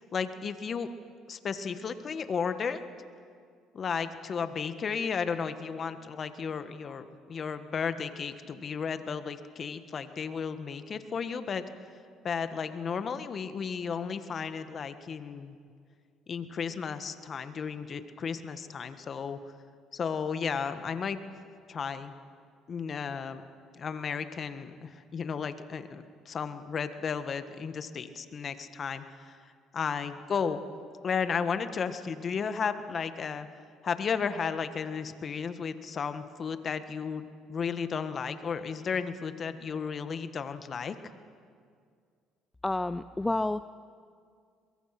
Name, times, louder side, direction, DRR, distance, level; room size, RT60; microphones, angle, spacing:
voice 1, 0.1-0.9 1.3-2.8 3.7-11.6 12.2-15.6 16.3-19.4 19.9-21.2 21.7-22.1 22.7-23.4 23.7-29.4 29.7-30.6 31.0-33.5 33.8-41.0, left 6 dB, 45° left, 10 dB, 1.4 m, -34 dB
voice 2, 42.6-43.6, left 2 dB, 15° left, 13 dB, 0.5 m, -29 dB
23.0 x 22.0 x 6.0 m, 2.2 s
supercardioid pair, 80°, 0 cm